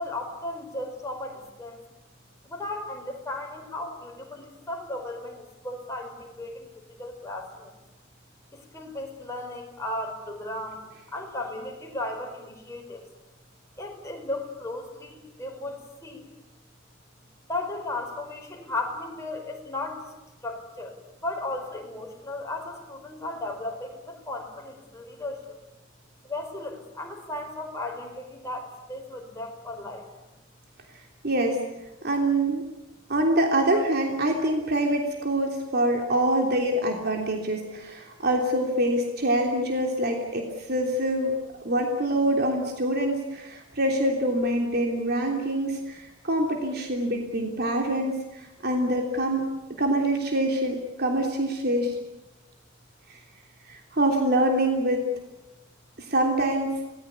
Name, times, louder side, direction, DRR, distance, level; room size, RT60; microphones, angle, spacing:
voice 1, 0.0-1.8 2.4-7.7 8.5-10.8 11.1-13.0 13.8-16.2 17.5-20.1 20.4-20.9 21.2-25.6 26.2-30.0, left 2 dB, 15° left, 1 dB, 5.0 m, -35 dB
voice 2, 31.2-31.6 32.0-32.6 33.1-41.3 41.6-49.5 49.8-51.9 53.7-55.0 56.0-56.7, right 1 dB, 50° right, 2 dB, 3.3 m, -25 dB
27.0 x 19.5 x 8.4 m, 1.0 s
head